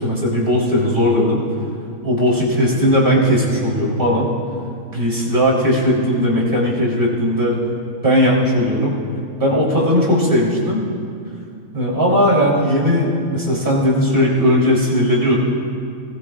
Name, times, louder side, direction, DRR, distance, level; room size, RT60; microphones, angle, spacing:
voice 1, 0.0-1.4 2.0-4.3 4.9-7.6 8.0-9.0 9.4-10.8 11.7-15.4, equal, 40° right, -5 dB, 3.9 m, -17 dB
24.0 x 20.0 x 2.5 m, 2.5 s
omnidirectional pair, 1.5 m